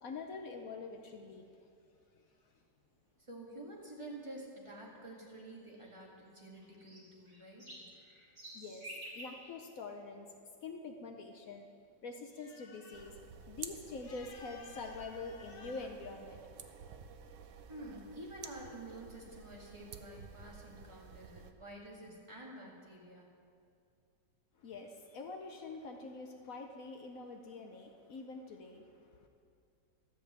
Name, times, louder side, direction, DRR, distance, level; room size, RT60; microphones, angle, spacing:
voice 1, 0.0-1.5 8.5-10.3 10.6-11.7 12.0-13.2 13.5-16.4 24.6-29.3, left 4 dB, 60° left, 4 dB, 0.9 m, -45 dB
sound 1, 0.9-16.2, right 1 dB, 40° right, 2.7 m, -57 dB
voice 2, 3.2-7.8 17.7-23.3, right 1 dB, 15° right, -3 dB, 1.8 m, -49 dB
sound 2, 12.9-21.5, right 6 dB, 65° right, 0.7 m, -52 dB
13.0 x 5.2 x 8.0 m, 2.4 s
omnidirectional pair, 1.9 m